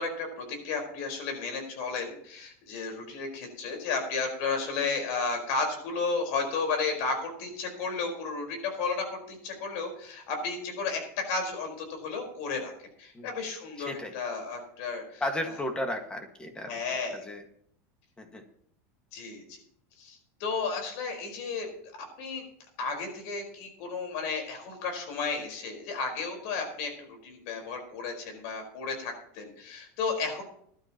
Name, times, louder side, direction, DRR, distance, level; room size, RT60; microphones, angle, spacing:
voice 1, 0.0-11.0 11.3-15.5 16.7-17.1 19.1-19.6 20.0-21.7 22.2-22.4 22.8-30.4, left 4 dB, 65° left, 3 dB, 4.6 m, -33 dB
voice 2, 15.2-16.7 17.2-17.4 18.2-18.4, left 1 dB, 10° left, 5 dB, 1.8 m, -33 dB
19.5 x 12.0 x 3.0 m, 0.67 s
supercardioid pair, 150°, 8 cm